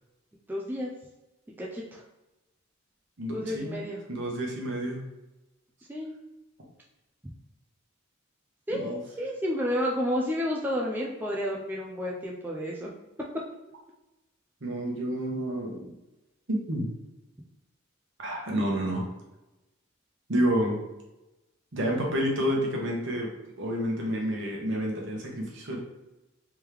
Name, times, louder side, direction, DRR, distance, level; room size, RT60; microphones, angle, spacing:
voice 1, 0.5-0.9 1.6-2.0 3.3-4.0 5.9-6.2 8.7-12.9, equal, 10° right, -3 dB, 0.4 m, -31 dB
voice 2, 3.2-3.8 4.1-5.0 8.7-9.0 14.6-15.9 16.5-16.9 18.2-19.1 20.3-20.8 21.7-23.3 23.6-25.8, equal, 60° right, -1 dB, 1.0 m, -29 dB
3.5 x 3.1 x 3.3 m, 1.0 s
head